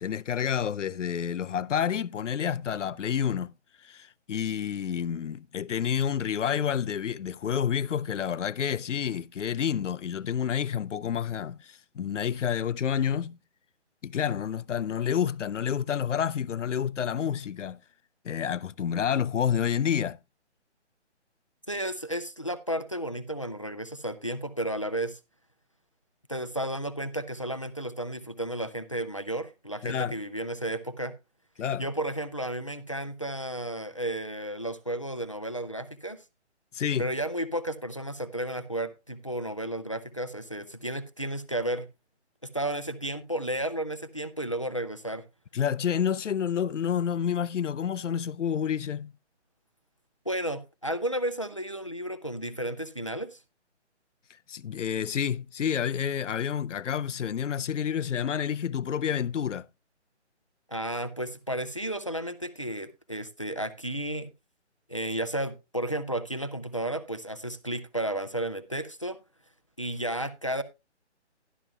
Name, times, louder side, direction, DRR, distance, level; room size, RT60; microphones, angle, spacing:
voice 1, 0.0-3.5 3.8-13.4 14.0-17.8 18.2-20.2 29.8-30.2 31.6-31.8 36.7-37.1 45.5-49.1 54.5-59.7, left 8 dB, 85° left, 0.6 m, -29 dB
voice 2, 21.7-25.2 26.3-31.1 31.8-36.2 37.0-41.9 42.5-45.2 50.3-53.4 60.7-64.3 64.9-69.2 69.8-70.6, right 1 dB, 30° left, 0.5 m, -33 dB
12.0 x 11.5 x 2.2 m
hypercardioid pair, 175°, 35 cm